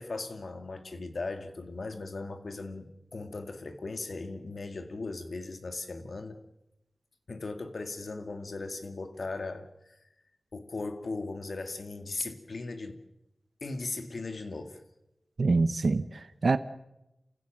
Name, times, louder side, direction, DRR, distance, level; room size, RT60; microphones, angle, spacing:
voice 1, 0.0-6.4 7.3-10.0 10.5-13.0 13.6-14.8, left 3 dB, 70° left, 2.1 m, -38 dB
voice 2, 15.4-16.6, right 3 dB, 65° right, 0.9 m, -25 dB
28.5 x 16.0 x 7.6 m
wide cardioid pair, 75°, 0 cm